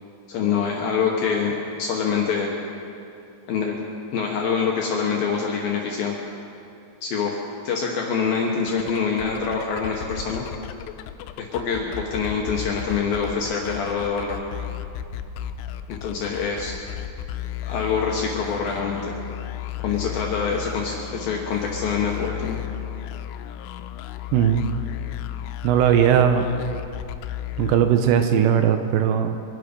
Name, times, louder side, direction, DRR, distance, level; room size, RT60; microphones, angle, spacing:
voice 1, 0.3-1.5 1.8-2.5 3.5-3.8 4.1-6.2 7.0-7.3 7.6-10.4 11.4-14.4 15.9-16.7 17.7-19.2 19.8-22.6, left 6 dB, 70° left, -1 dB, 2.3 m, -25 dB
sound 1, 8.7-28.3, left 12 dB, 90° left, 3.1 m, -34 dB
voice 2, 24.3-24.7 25.6-26.5 27.6-29.4, right 9 dB, 80° right, 7 dB, 2.8 m, -19 dB
24.0 x 11.0 x 5.2 m, 2.6 s
omnidirectional pair, 5.5 m